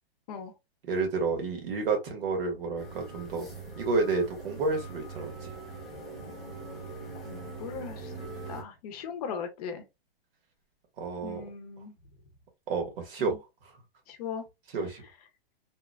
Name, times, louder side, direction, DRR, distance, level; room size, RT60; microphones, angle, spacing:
voice 1, 0.8-3.5 3.8-5.5 11.0-11.4 12.7-13.4 14.7-15.0, right 4 dB, 65° right, 1.3 m, -30 dB
sound 1, 2.8-8.6, right 3 dB, ahead, 0.4 m, -42 dB
voice 2, 7.3-9.8 11.2-11.9 13.2-13.4 14.1-14.4, left 6 dB, 40° left, 0.7 m, -39 dB
2.9 x 2.2 x 2.2 m
hypercardioid pair, 155°, 31 cm